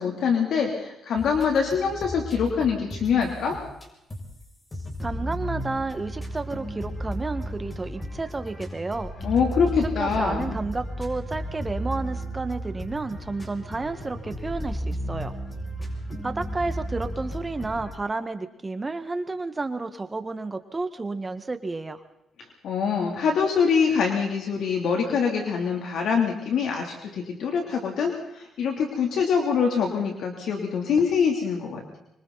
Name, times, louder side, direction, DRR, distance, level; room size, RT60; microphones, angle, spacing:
voice 1, 0.0-3.6 9.2-10.5 22.6-32.0, left 6 dB, 70° left, 2 dB, 3.1 m, -24 dB
sound 1, 1.2-3.8 4.1-4.4 4.7-17.9, equal, 25° left, 6.9 m, -34 dB
voice 2, 5.0-9.1 10.0-15.3 16.2-22.0, right 3 dB, 20° right, 9 dB, 1.5 m, -31 dB
25.5 x 25.0 x 4.1 m, 0.86 s
cardioid pair, 90°, 0 cm